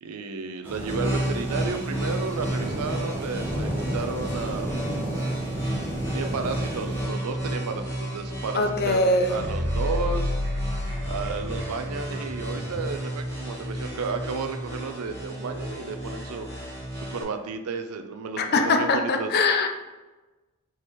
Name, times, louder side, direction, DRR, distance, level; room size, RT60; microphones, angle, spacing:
voice 1, 0.0-4.9 6.1-10.4 11.0-16.5 17.1-19.3, right 4 dB, 75° right, 7 dB, 0.5 m, -32 dB
sound 1, 0.6-7.1, right 1 dB, 10° right, 1.0 m, -33 dB
sound 2, 0.9-17.2, right 1 dB, 10° left, 1.1 m, -32 dB
voice 2, 8.5-9.4 18.4-19.7, left 2 dB, 45° left, 5 dB, 0.5 m, -22 dB
sound 3, 9.1-12.0 12.3-12.4, left 1 dB, 60° right, 1.2 m, -29 dB
4.1 x 3.9 x 3.1 m, 1.2 s
head